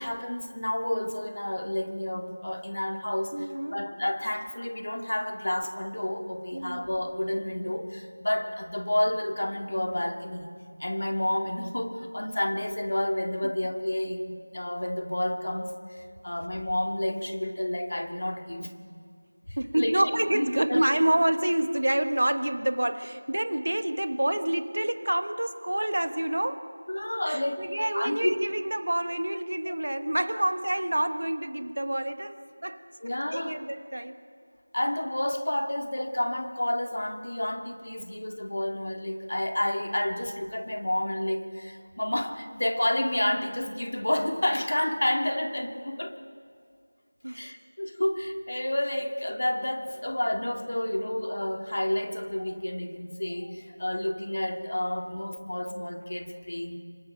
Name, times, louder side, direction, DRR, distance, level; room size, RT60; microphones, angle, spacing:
voice 1, 0.0-3.5 3.7-10.5 10.8-18.8 19.5-20.0 20.3-20.8 26.9-27.6 27.9-28.3 33.0-33.6 34.7-46.2 47.3-56.8, left 1 dB, 55° left, 5 dB, 1.9 m, -30 dB
voice 2, 3.3-3.8 6.5-6.9 13.4-13.5 19.6-26.7 27.3-32.8 33.3-34.2 47.2-47.4, right 1 dB, 60° right, 10 dB, 1.2 m, -28 dB
26.5 x 24.5 x 4.6 m, 2.1 s
figure-of-eight pair, 175°, 0 cm